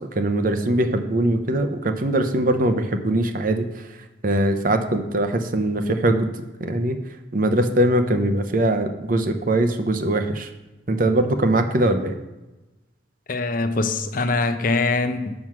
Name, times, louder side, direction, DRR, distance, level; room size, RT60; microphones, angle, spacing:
voice 1, 0.2-3.7 4.2-6.3 6.6-7.0 7.3-10.5 10.9-12.1, right 1 dB, 45° right, 8 dB, 0.7 m, -21 dB
voice 2, 13.3-15.3, left 3 dB, 45° left, 9 dB, 0.6 m, -23 dB
7.4 x 6.1 x 6.1 m, 1.1 s
head